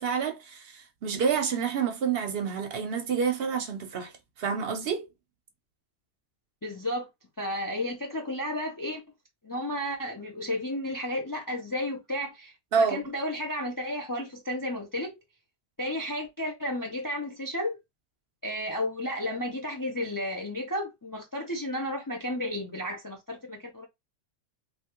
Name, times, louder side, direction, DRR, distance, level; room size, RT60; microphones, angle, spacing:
voice 1, 0.0-5.1 12.7-13.1, right 6 dB, 60° right, 0.8 m, -28 dB
voice 2, 6.6-7.1 7.4-9.0 9.4-15.2 15.8-17.8 18.4-23.8, left 1 dB, 30° left, 0.4 m, -32 dB
3.3 x 2.4 x 2.9 m
omnidirectional pair, 1.2 m